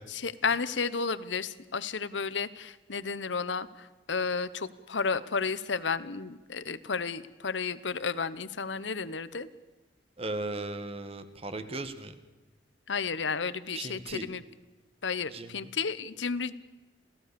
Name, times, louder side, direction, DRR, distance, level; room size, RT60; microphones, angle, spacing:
voice 1, 0.1-9.5 12.9-14.4 15.0-16.5, left 5 dB, 80° left, 16 dB, 1.0 m, -32 dB
voice 2, 10.2-12.1 13.7-14.3 15.3-15.6, right 2 dB, 30° right, 10 dB, 1.6 m, -37 dB
28.0 x 17.0 x 6.9 m, 1.1 s
head